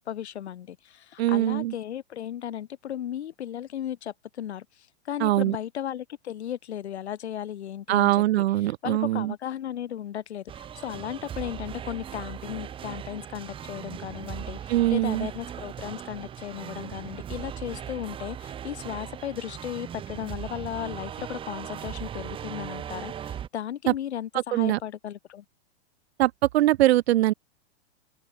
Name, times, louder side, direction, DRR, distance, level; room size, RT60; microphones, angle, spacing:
voice 1, 0.1-4.6 5.0-25.4, left 10 dB, 90° left, 3.0 m, -35 dB
voice 2, 1.2-1.7 5.2-5.6 7.9-9.3 14.7-15.3 23.9-24.0 24.5-24.8 26.2-27.3, right 15 dB, 75° right, 0.6 m, -22 dB
sound 1, 10.5-23.5, right 9 dB, 15° right, 1.6 m, -38 dB
open air
supercardioid pair, 155°, 32 cm